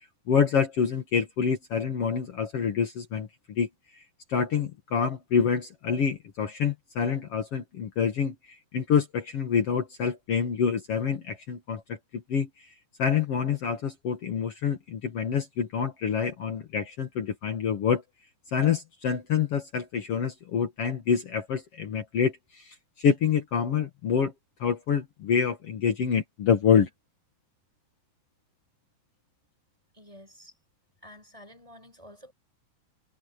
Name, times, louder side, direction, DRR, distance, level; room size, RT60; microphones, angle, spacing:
voice 1, 0.3-3.7 4.3-12.7 13.0-18.0 18.5-24.3 24.6-26.9, left 7 dB, 75° left, 1.3 m, -27 dB
voice 2, 29.9-30.5 31.0-32.3, left 1 dB, 5° right, 4.9 m, -50 dB
omnidirectional pair, 5.4 m